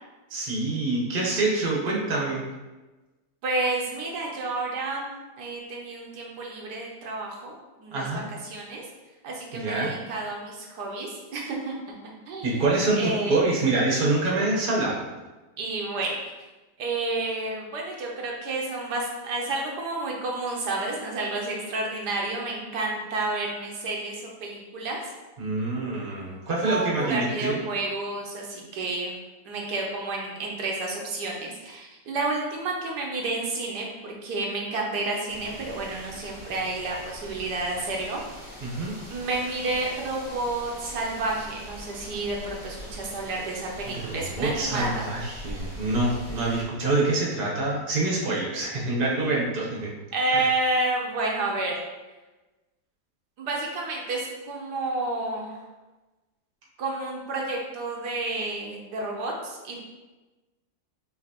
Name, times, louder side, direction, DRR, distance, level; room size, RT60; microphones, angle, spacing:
voice 1, 0.3-2.4 7.9-8.3 9.5-9.9 12.4-15.0 25.4-27.6 38.6-38.9 43.9-49.9 50.3-50.4, right 2 dB, 40° right, -4 dB, 1.0 m, -26 dB
voice 2, 3.4-8.0 8.4-8.8 9.2-11.7 12.3-12.6 13.0-13.4 15.6-16.2 16.8-25.0 26.6-29.2 29.4-38.2 38.6-38.7 39.1-45.1 50.1-51.8 53.4-55.6 56.8-59.8, right 2 dB, 75° right, -1 dB, 1.3 m, -30 dB
sound 1, 35.3-46.6, equal, 5° right, 1.1 m, -42 dB
5.8 x 3.0 x 2.9 m, 1.2 s
omnidirectional pair, 1.8 m